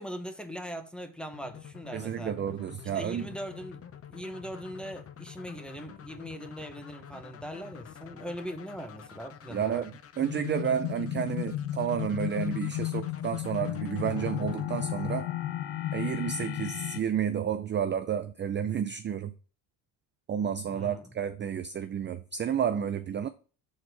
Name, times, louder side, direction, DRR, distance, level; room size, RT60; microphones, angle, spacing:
voice 1, 0.0-2.3 2.9-9.9 20.7-21.0, equal, ahead, 0.9 m, -40 dB
sound 1, 1.3-16.3, left 8 dB, 35° left, 0.6 m, -49 dB
voice 2, 1.9-3.4 9.5-15.3 15.9-19.3 20.3-23.3, right 8 dB, 30° right, 0.4 m, -31 dB
sound 2, 10.2-17.0, left 13 dB, 80° left, 0.8 m, -34 dB
6.4 x 4.2 x 4.6 m
cardioid pair, 100°, 43 cm